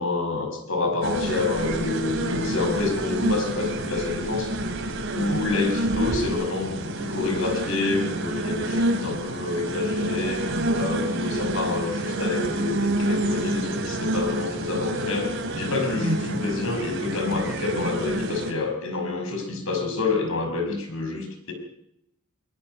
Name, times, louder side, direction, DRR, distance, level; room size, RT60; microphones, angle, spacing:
voice 1, 0.0-4.6 5.1-10.4 10.7-21.5, left 3 dB, 65° left, 4 dB, 5.7 m, -28 dB
sound 1, 1.0-18.5, right 1 dB, 60° right, 3.1 m, -28 dB
22.5 x 21.5 x 5.4 m, 0.77 s
head